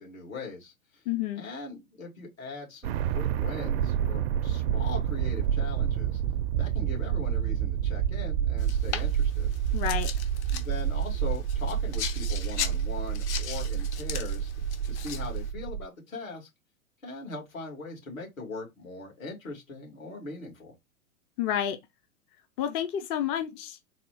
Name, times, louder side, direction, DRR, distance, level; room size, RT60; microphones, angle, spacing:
voice 1, 0.0-1.0 1.4-6.2 6.6-9.5 10.5-14.5 14.8-16.5 17.0-20.7, left 3 dB, 75° left, 2.5 m, -40 dB
voice 2, 1.1-1.4 9.7-10.1 21.4-21.8 22.6-23.8, left 10 dB, 20° left, 0.4 m, -29 dB
sound 1, 2.8-15.9, right 9 dB, 50° right, 0.5 m, -29 dB
sound 2, 8.6-15.5, left 8 dB, 55° left, 0.9 m, -39 dB
4.1 x 2.3 x 4.6 m
figure-of-eight pair, 100°, 41 cm